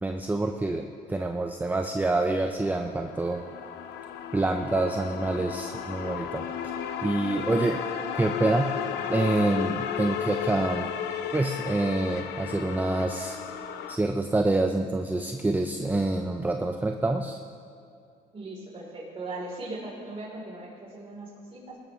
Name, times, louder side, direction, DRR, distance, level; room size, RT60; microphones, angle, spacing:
voice 1, 0.0-3.4 4.3-6.5 7.0-7.8 8.1-8.7 9.0-10.9 11.3-13.4 13.9-17.4, right 2 dB, 10° right, 4 dB, 0.6 m, -27 dB
sound 1, 2.6-14.0, left 8 dB, 80° left, 0.8 m, -34 dB
voice 2, 18.3-21.8, right 2 dB, 35° right, -5 dB, 3.6 m, -39 dB
21.0 x 13.0 x 3.2 m, 2.4 s
cardioid pair, 110°, 17 cm